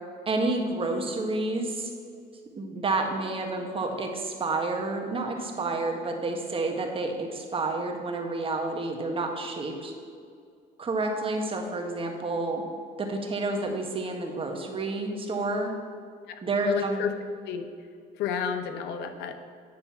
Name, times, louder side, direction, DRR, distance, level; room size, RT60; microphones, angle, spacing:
voice 1, 0.3-1.9 2.6-9.9 10.8-12.6 13.0-15.7 16.4-17.0, right 2 dB, 30° right, 3 dB, 1.3 m, -29 dB
voice 2, 16.7-17.1 17.4-17.6 18.1-19.4, left 7 dB, 85° left, 7 dB, 0.8 m, -31 dB
9.5 x 4.0 x 6.9 m, 2.2 s
cardioid pair, 110°, 17 cm